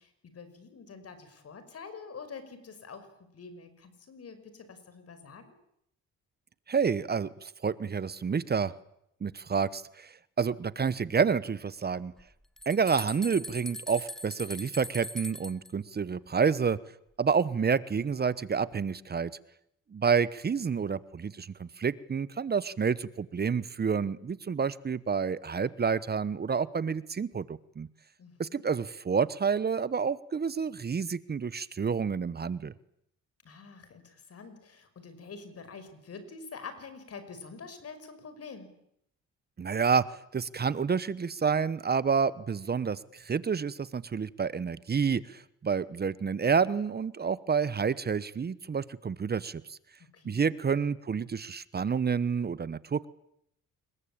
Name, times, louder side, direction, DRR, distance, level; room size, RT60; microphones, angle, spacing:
voice 1, 0.0-3.1 3.3-5.5 28.2-28.6 33.4-38.7 50.1-50.5, left 5 dB, 50° left, 10 dB, 5.9 m, -46 dB
voice 2, 6.7-8.7 9.2-10.1 10.4-12.1 12.7-16.8 17.2-19.3 19.9-27.9 28.4-32.7 39.6-40.0 40.3-49.8 50.2-53.1, right 6 dB, 30° right, 18 dB, 1.0 m, -29 dB
sound 1, 12.2-12.3 12.6-15.7, left 1 dB, ahead, 1.3 m, -41 dB
27.5 x 22.0 x 8.8 m, 0.76 s
cardioid pair, 90°, 30 cm